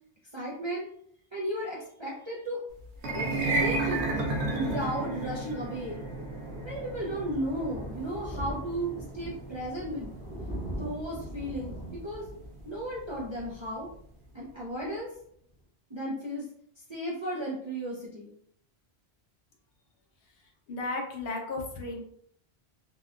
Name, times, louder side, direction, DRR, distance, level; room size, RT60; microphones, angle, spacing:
voice 1, 0.3-0.9 1.3-2.6 3.1-3.3 3.6-6.0 6.6-10.1 10.7-12.3 12.6-13.9 14.3-15.1 15.9-16.5 16.9-18.3, right 1 dB, 40° right, -6 dB, 0.4 m, -35 dB
sound 1, 2.9-13.3, right 2 dB, 85° right, 0.9 m, -34 dB
Thunder, 5.3-14.4 14.7-14.9 15.2-15.3 15.5-15.6, right 1 dB, 10° left, 0.7 m, -42 dB
voice 2, 20.7-22.0, left 2 dB, 70° left, 1 dB, 0.8 m, -34 dB
2.7 x 2.1 x 2.4 m, 0.66 s
omnidirectional pair, 1.1 m